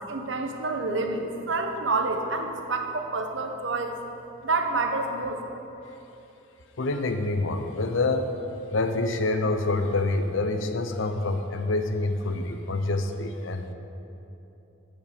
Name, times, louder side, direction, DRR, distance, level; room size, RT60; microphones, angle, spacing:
voice 1, 0.0-4.0 4.4-5.4, right 3 dB, 70° right, 4 dB, 0.9 m, -28 dB
voice 2, 6.8-8.3 8.7-13.7, left 2 dB, 80° left, 7 dB, 0.7 m, -26 dB
14.0 x 5.3 x 5.1 m, 2.9 s
head